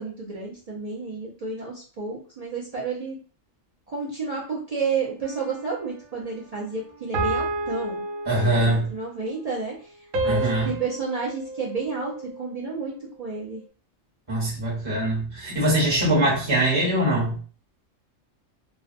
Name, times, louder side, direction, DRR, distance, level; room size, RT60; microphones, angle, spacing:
voice 1, 0.0-3.2 3.9-8.0 8.4-9.9 10.2-13.6, right 4 dB, 60° right, -4 dB, 0.4 m, -31 dB
sound 1, 5.2-5.9 7.1-8.9 10.1-12.5, right 2 dB, 90° right, 1.0 m, -30 dB
voice 2, 8.3-8.9 10.2-10.7 14.3-17.4, right 1 dB, 25° right, -5 dB, 0.8 m, -22 dB
2.5 x 2.1 x 2.5 m, 0.40 s
omnidirectional pair, 1.3 m